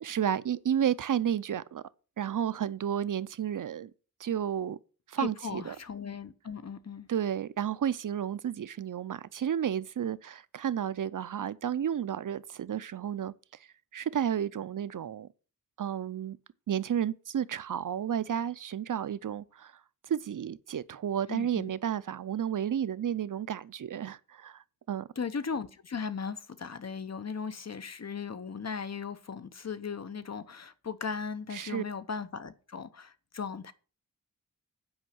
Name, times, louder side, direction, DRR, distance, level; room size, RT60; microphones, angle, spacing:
voice 1, 0.0-1.8 2.2-3.9 4.2-4.8 5.1-5.8 7.1-13.3 13.9-15.3 15.8-16.4 16.7-19.7 20.1-25.1 31.5-31.8, right 9 dB, 65° right, 0.5 m, -32 dB
voice 2, 5.2-7.1 21.3-21.7 25.2-33.7, left 6 dB, 50° left, 0.9 m, -37 dB
8.8 x 5.5 x 7.6 m
wide cardioid pair, 115°, 35 cm